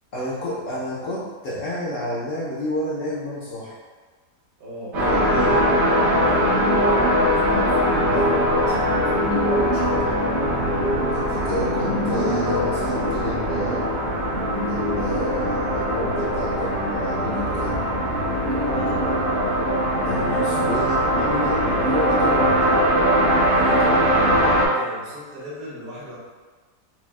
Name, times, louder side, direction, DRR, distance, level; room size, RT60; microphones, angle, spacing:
voice 1, 0.1-3.8 5.0-5.7 11.1-13.9 14.7-17.8 20.0-22.7, left 1 dB, 60° left, -7 dB, 0.9 m, -30 dB
voice 2, 4.6-5.0 6.1-6.5 6.8-10.2 18.5-19.0 23.5-26.2, right 1 dB, 65° right, -6 dB, 1.5 m, -36 dB
sound 1, 4.9-24.7, equal, 85° right, 1.8 m, -21 dB
5.9 x 2.4 x 2.3 m, 1.4 s
omnidirectional pair, 1.8 m